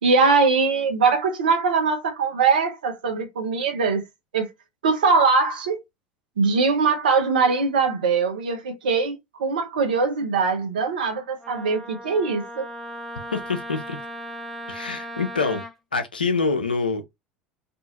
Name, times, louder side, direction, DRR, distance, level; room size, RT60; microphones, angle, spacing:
voice 1, 0.0-4.0 4.3-4.5 4.8-5.8 6.4-12.7, right 4 dB, 75° right, 0.8 m, -21 dB
Wind instrument woodwind instrument, 11.4-15.7, right 1 dB, 5° left, 0.7 m, -37 dB
voice 2, 13.3-14.0 14.7-15.6 15.9-17.0, left 4 dB, 85° left, 0.5 m, -25 dB
2.6 x 2.4 x 2.8 m
figure-of-eight pair, 75°, 5 cm